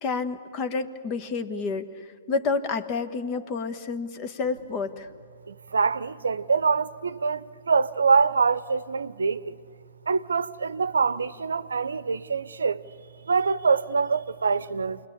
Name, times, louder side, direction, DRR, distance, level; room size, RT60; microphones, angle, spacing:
voice 1, 0.0-1.9 2.3-5.1, left 4 dB, 35° left, 1.3 m, -29 dB
voice 2, 5.5-9.6 10.1-12.8 13.3-15.0, right 5 dB, 80° right, 0.7 m, -24 dB
28.5 x 21.0 x 8.5 m
figure-of-eight pair, 120°, 0 cm